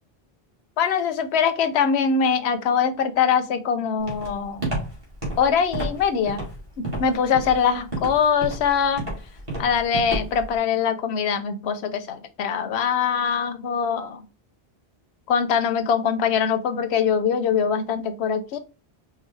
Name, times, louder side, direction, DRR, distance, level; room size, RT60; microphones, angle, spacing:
voice 1, 0.8-4.6 5.4-6.4 6.8-9.0 9.6-14.2 15.3-18.6, left 7 dB, 80° left, 10 dB, 0.9 m, -23 dB
Walk footsteps, 4.1-10.5, right 1 dB, 30° right, 1.8 m, -30 dB
4.8 x 2.2 x 3.2 m, 0.32 s
omnidirectional pair, 1.1 m